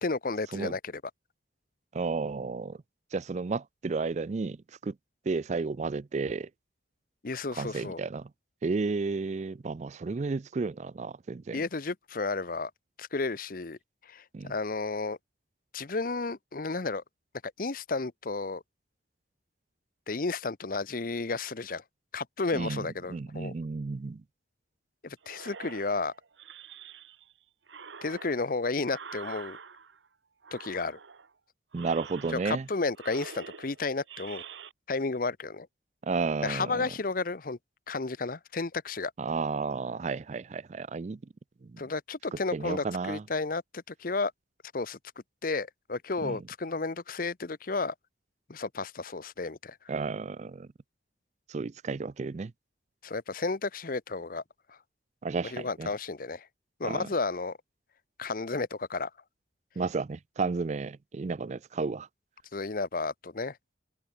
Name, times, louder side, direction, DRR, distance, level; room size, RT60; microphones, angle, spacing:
voice 1, 0.0-1.0 7.2-8.0 11.5-12.7 13.0-15.2 15.7-17.0 17.6-18.6 20.1-21.8 22.1-23.5 25.0-26.1 28.0-29.6 30.5-31.0 32.4-34.4 34.9-35.7 36.4-37.6 37.9-39.1 41.8-44.3 44.7-45.0 45.4-47.9 48.5-49.8 53.0-54.4 54.7-54.8 55.5-56.5 56.8-57.6 58.2-59.1 62.5-63.6, left 3 dB, 50° left, 0.8 m, -32 dB
voice 2, 1.9-2.8 3.1-5.0 5.3-6.5 7.5-8.3 8.6-11.6 14.3-14.5 22.5-24.2 31.7-32.7 36.0-36.9 39.2-41.2 41.6-41.8 42.3-43.2 46.2-46.4 49.9-50.7 51.5-52.5 55.2-55.9 56.8-57.1 59.8-62.1, right 4 dB, 40° right, 0.4 m, -32 dB
sound 1, 25.2-27.3 27.7-30.1 30.4-31.3 31.7-32.7 32.9-34.7, right 6 dB, 85° right, 1.1 m, -46 dB
open air
head